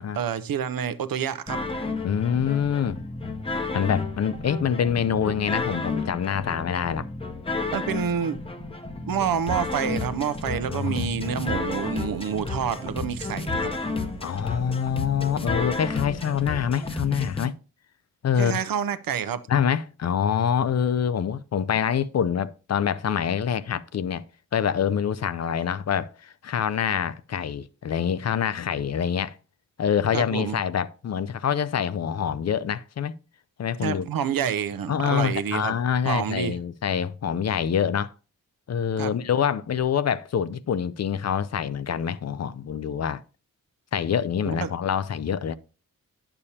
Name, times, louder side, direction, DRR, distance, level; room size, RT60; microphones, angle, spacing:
voice 1, 0.1-1.6 7.7-8.4 9.1-13.7 18.4-19.4 30.1-30.6 33.8-35.8 36.1-36.6 39.0-39.1 44.5-44.7, right 8 dB, 90° right, 0.6 m, -28 dB
sound 1, 1.5-17.5, left 3 dB, 15° left, 0.7 m, -32 dB
voice 2, 2.0-3.0 3.7-7.1 10.7-11.2 14.2-17.5 18.2-18.6 19.5-24.2 24.5-29.3 29.8-33.1 33.6-34.1 34.9-38.1 38.7-43.2 43.9-45.5, left 8 dB, 50° left, 0.4 m, -25 dB
9.7 x 6.9 x 2.8 m
wide cardioid pair, 155°, 34 cm